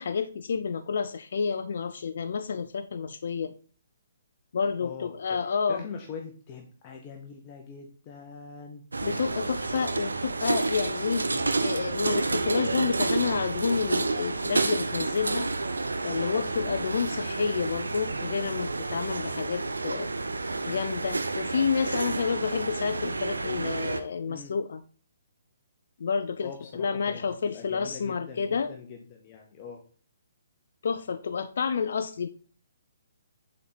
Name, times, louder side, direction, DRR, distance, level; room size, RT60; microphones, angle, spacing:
voice 1, 0.0-3.5 4.5-5.8 9.0-11.3 11.6-15.5 16.0-20.1 20.7-24.8 26.0-28.8 30.8-32.3, left 6 dB, 60° left, 0.4 m, -29 dB
voice 2, 4.8-5.4 5.7-8.8 11.3-11.5 16.3-16.5 24.3-24.5 26.4-29.8, left 6 dB, 30° left, 1.0 m, -43 dB
sound 1, 8.9-24.0, right 3 dB, 80° right, 0.7 m, -30 dB
7.3 x 4.3 x 4.0 m
figure-of-eight pair, 135°, 0 cm